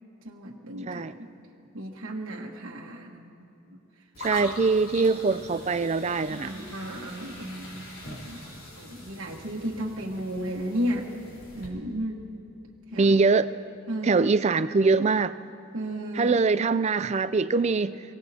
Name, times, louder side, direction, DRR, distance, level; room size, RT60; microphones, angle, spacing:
voice 1, 0.2-1.3 1.7-3.2 3.7-3.8 5.1-5.2 6.3-7.8 8.2-11.1 11.5-12.3 12.9-13.2 13.9-14.2 15.7-16.4, equal, 65° right, 1.4 m, -34 dB
sound 1, 4.1-11.7, equal, 70° left, 3.4 m, -43 dB
voice 2, 4.2-6.5 12.9-13.5 14.0-15.4 16.1-18.0, right 4 dB, 30° right, 0.3 m, -23 dB
28.0 x 17.5 x 2.8 m
head